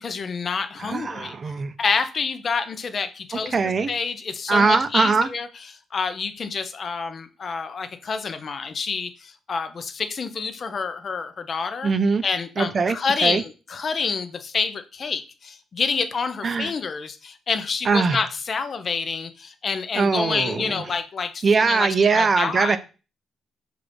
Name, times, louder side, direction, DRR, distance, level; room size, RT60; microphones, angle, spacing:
voice 1, 0.0-1.4 1.8-5.5 5.9-11.9 12.2-22.8, left 5 dB, 45° left, 9 dB, 0.6 m, -28 dB
voice 2, 0.8-1.7 3.5-3.9 4.5-5.3 11.8-12.2 12.6-13.0 13.2-13.4 16.4-16.7 17.9-18.2 20.0-20.8 21.4-22.8, right 4 dB, 40° right, 10 dB, 0.5 m, -21 dB
5.9 x 2.5 x 3.4 m, 0.33 s
cardioid pair, 90°, 0 cm